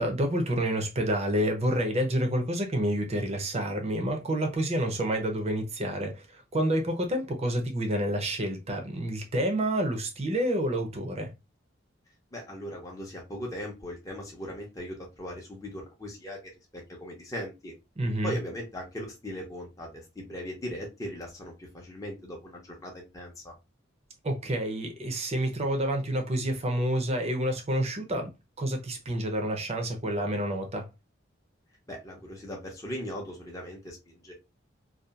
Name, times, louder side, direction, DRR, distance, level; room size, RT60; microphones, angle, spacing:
voice 1, 0.0-11.3 18.0-18.4 24.2-28.3 28.6-30.8, right 1 dB, 30° right, 0.6 m, -28 dB
voice 2, 12.3-16.4 16.7-17.7 18.2-23.5 31.9-34.3, equal, 15° left, 0.6 m, -39 dB
2.7 x 2.3 x 2.3 m
head